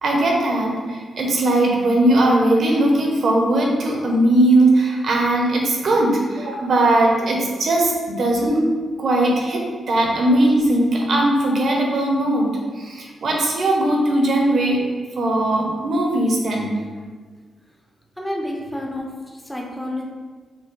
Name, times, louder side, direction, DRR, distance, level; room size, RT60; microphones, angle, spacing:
voice 1, 0.0-8.7 9.0-12.5 12.8-14.9 15.2-16.8, right 1 dB, 50° right, -1 dB, 0.8 m, -19 dB
voice 2, 18.2-20.1, left 1 dB, 5° left, -1 dB, 0.6 m, -29 dB
5.6 x 2.2 x 3.7 m, 1.5 s
wide cardioid pair, 165°, 0 cm